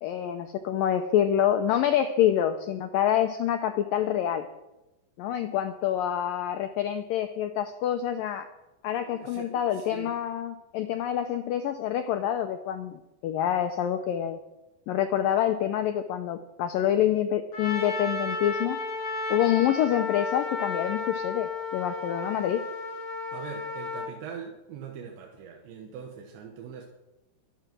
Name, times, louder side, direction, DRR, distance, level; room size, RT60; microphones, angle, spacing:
voice 1, 0.0-4.5 5.2-8.5 8.8-14.4 14.9-18.8 19.3-22.6, left 10 dB, 90° left, 7 dB, 1.9 m, -27 dB
voice 2, 8.9-10.2 23.3-26.9, right 7 dB, 85° right, 1 dB, 3.7 m, -42 dB
Trumpet, 17.5-24.1, left 3 dB, 35° left, 3.5 m, -33 dB
24.0 x 8.9 x 6.1 m, 0.97 s
omnidirectional pair, 5.1 m